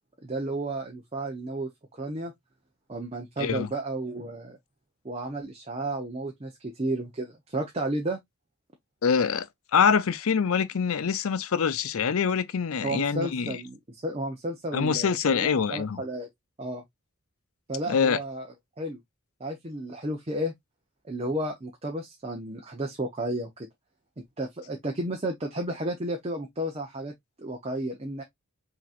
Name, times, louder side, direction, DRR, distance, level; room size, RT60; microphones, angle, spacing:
voice 1, 0.2-2.3 2.9-4.6 5.0-8.2 12.8-16.3 16.6-16.8 17.7-18.5 18.8-19.0 19.4-20.5 21.0-23.7 24.2-27.1 27.4-28.2, right 1 dB, 30° right, 0.8 m, -32 dB
voice 2, 3.4-3.7 9.0-9.5 9.7-13.6 14.7-16.0 17.9-18.2, left 6 dB, 70° left, 0.5 m, -25 dB
5.9 x 2.9 x 2.4 m
head